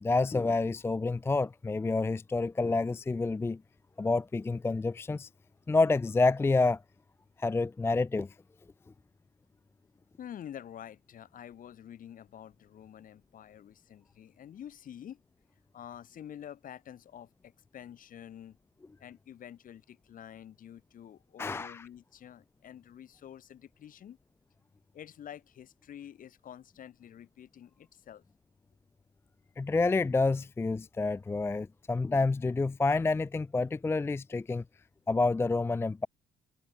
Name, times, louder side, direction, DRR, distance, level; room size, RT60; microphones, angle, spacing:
voice 1, 0.0-3.6 4.0-5.3 5.7-6.8 7.4-8.3 21.4-21.9 29.6-34.6 35.1-36.1, left 3 dB, 15° left, 0.5 m, -28 dB
voice 2, 10.2-15.2 15.7-18.6 19.0-24.2 24.9-28.2, left 10 dB, 55° left, 5.3 m, -48 dB
cardioid pair, 110°, 17 cm